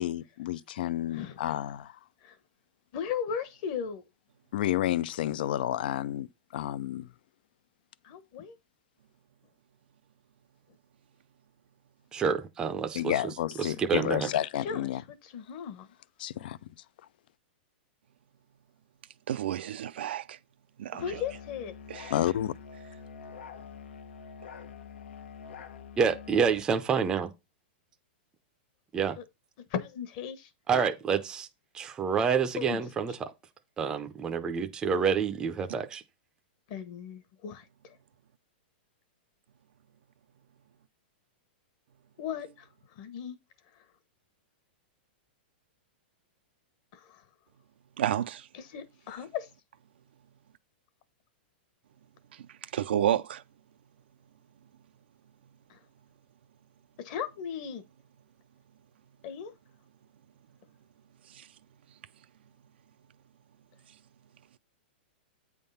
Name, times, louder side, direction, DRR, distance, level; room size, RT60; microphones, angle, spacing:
voice 1, 0.0-2.0 4.5-7.1 12.9-15.0 16.2-16.6 22.1-22.5, left 12 dB, 60° left, 0.4 m, -30 dB
voice 2, 2.9-4.0 8.0-8.6 14.6-15.9 20.9-21.7 29.2-29.3 29.7-30.5 32.6-32.8 36.7-38.0 42.2-43.4 43.7-43.8 46.9-47.2 48.5-49.5 55.7-55.8 57.0-57.8 59.2-59.5, left 7 dB, 40° left, 1.1 m, -37 dB
voice 3, 12.1-13.1 13.6-14.3 26.0-27.3 28.9-29.2 30.7-31.5 31.7-33.3 33.8-36.0, right 6 dB, 10° right, 0.5 m, -28 dB
voice 4, 19.3-20.4 20.8-21.2 21.9-22.1 48.0-48.5 52.3-52.4 52.7-53.4 61.3-61.5, right 11 dB, 75° right, 0.5 m, -30 dB
Musical instrument, 21.0-26.7, left 6 dB, 90° left, 1.0 m, -46 dB
8.6 x 3.6 x 5.5 m
supercardioid pair, 165°, 6 cm